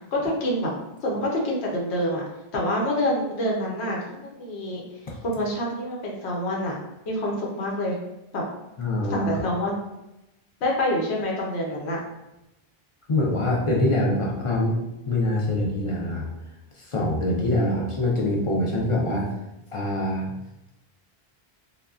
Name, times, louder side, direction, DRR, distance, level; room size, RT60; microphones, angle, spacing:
voice 1, 0.1-0.7 1.0-2.2 2.5-4.8 5.2-6.8 7.1-8.0 8.3-8.4 9.1-9.8 10.6-12.0, left 1 dB, 85° left, -2 dB, 1.0 m, -26 dB
voice 2, 8.8-9.3 13.1-14.7 15.1-16.3 16.8-19.3 19.7-20.3, left 1 dB, 45° left, -3 dB, 0.4 m, -24 dB
3.3 x 2.1 x 2.3 m, 0.93 s
omnidirectional pair, 1.1 m